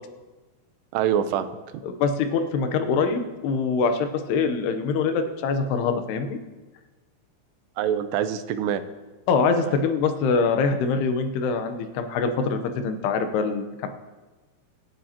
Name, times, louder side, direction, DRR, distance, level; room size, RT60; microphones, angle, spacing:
voice 1, 0.9-1.5 7.8-8.8 9.6-9.8, right 9 dB, 90° right, 10 dB, 2.9 m, -25 dB
voice 2, 1.8-6.4 9.3-13.9, left 5 dB, 80° left, 7 dB, 2.9 m, -24 dB
25.5 x 10.0 x 2.9 m, 1.2 s
omnidirectional pair, 4.7 m